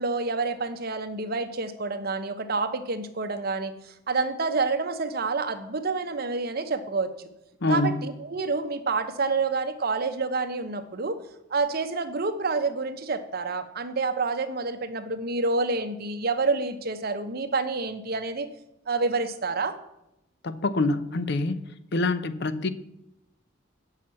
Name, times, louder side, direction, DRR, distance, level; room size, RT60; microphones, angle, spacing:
voice 1, 0.0-3.7 4.1-7.1 7.7-11.2 11.5-18.5 18.9-19.7, right 3 dB, 50° right, 9 dB, 0.9 m, -28 dB
voice 2, 7.6-8.1 20.4-21.6 21.9-22.7, left 2 dB, 60° left, 12 dB, 0.6 m, -25 dB
8.6 x 5.7 x 7.6 m, 0.85 s
head